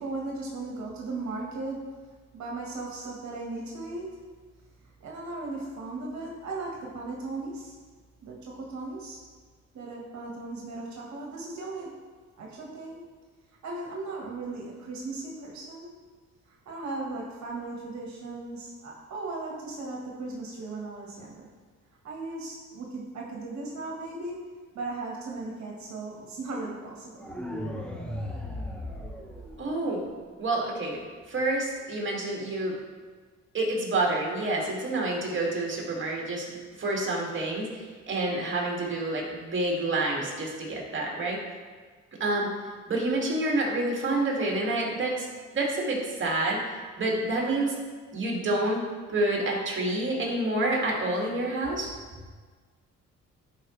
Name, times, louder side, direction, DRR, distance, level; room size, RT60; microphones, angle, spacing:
voice 1, 0.0-1.8 2.3-4.1 5.0-7.8 8.2-9.2 9.7-11.9 12.4-13.0 13.6-15.9 16.6-21.5 22.0-24.4 24.7-27.3, right 3 dB, 65° right, -2 dB, 1.5 m, -37 dB
sound 1, 27.2-30.2, left 1 dB, 5° left, 1.0 m, -36 dB
voice 2, 29.6-30.1 30.4-31.0 31.3-32.8 33.5-36.5 36.8-41.4 42.2-42.5 42.9-45.3 45.5-46.6 47.0-47.8 48.1-51.9, right 2 dB, 40° right, -2 dB, 2.2 m, -28 dB
11.5 x 4.9 x 3.3 m, 1.4 s
cardioid pair, 90°, 30 cm